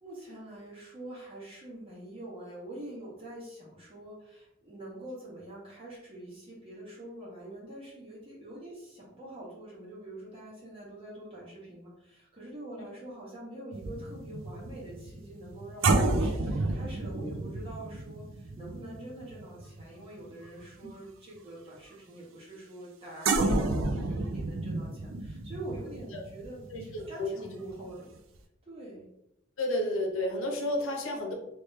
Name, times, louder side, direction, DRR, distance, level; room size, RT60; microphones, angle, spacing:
voice 1, 0.0-28.1 28.6-29.1, right 1 dB, 30° right, -6 dB, 1.4 m, -45 dB
sound 1, 13.7-20.3 20.6-20.9 23.2-27.9 28.2-28.4, right 2 dB, 75° right, 0.5 m, -31 dB
voice 2, 26.7-27.3 29.6-31.3, left 1 dB, 80° left, 1 dB, 0.8 m, -31 dB
3.1 x 2.8 x 3.3 m, 0.85 s
head